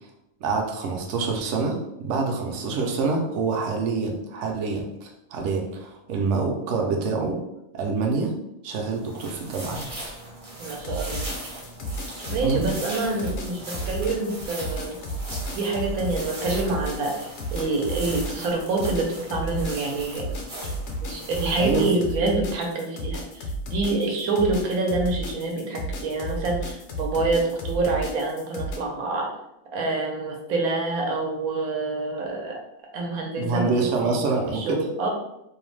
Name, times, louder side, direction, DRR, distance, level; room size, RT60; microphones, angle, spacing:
voice 1, 0.4-7.4 7.7-8.3 8.6-9.9 12.4-12.7 21.6-21.9 33.2-34.8, right 4 dB, 70° right, 1 dB, 0.8 m, -26 dB
sound 1, 8.9-21.9, right 1 dB, 30° right, 0.5 m, -39 dB
voice 2, 10.6-11.3 12.3-15.0 15.5-20.3 21.0-29.3 29.7-32.6 32.9-35.1, right 3 dB, 90° right, 0 dB, 1.1 m, -27 dB
sound 2, 10.8-28.8, equal, 65° left, 0.8 m, -33 dB
2.7 x 2.0 x 3.1 m, 0.84 s
omnidirectional pair, 1.5 m